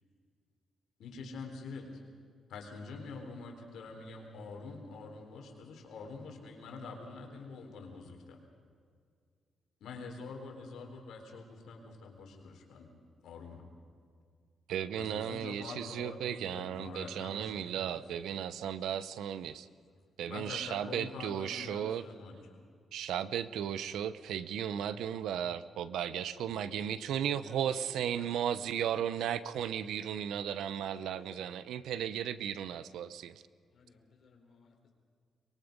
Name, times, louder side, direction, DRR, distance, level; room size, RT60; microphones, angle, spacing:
voice 1, 1.0-1.9 2.5-8.4 9.8-12.9 13.2-13.6 15.0-18.0 20.3-22.6, left 4 dB, 85° left, 2 dB, 3.8 m, -45 dB
voice 2, 14.7-19.7 20.2-22.0 22.9-33.4, right 9 dB, 85° right, 15 dB, 0.7 m, -35 dB
voice 3, 26.3-29.6 30.9-31.5 33.7-34.9, left 4 dB, 65° left, 2 dB, 4.1 m, -58 dB
24.0 x 22.0 x 5.3 m, 2.1 s
cardioid pair, 80°, 0 cm